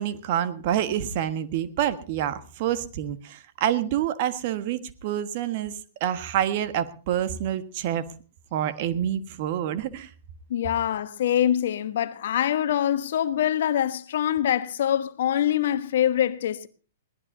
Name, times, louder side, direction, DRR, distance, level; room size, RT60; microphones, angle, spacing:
voice 1, 0.0-8.1 8.5-10.1, right 10 dB, 45° right, 1.5 m, -27 dB
voice 2, 10.5-16.7, left 10 dB, 60° left, 1.1 m, -24 dB
22.0 x 17.5 x 2.8 m
figure-of-eight pair, 115°, 0 cm